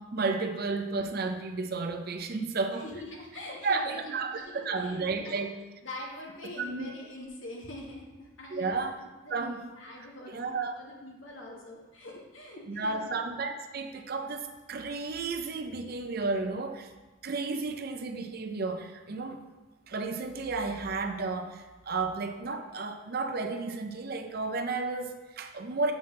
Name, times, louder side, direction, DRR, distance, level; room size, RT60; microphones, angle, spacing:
voice 1, 0.1-2.8 3.6-5.6 6.6-6.9 8.5-9.0 9.3-9.7 10.0-10.8 12.7-16.9 17.2-19.4 19.9-25.9, right 3 dB, 50° right, 6 dB, 0.5 m, -32 dB
voice 2, 2.8-4.0 4.3-5.4 5.8-8.7 9.2-12.9, left 1 dB, 70° left, -2 dB, 1.5 m, -44 dB
7.2 x 5.6 x 3.2 m, 1.1 s
head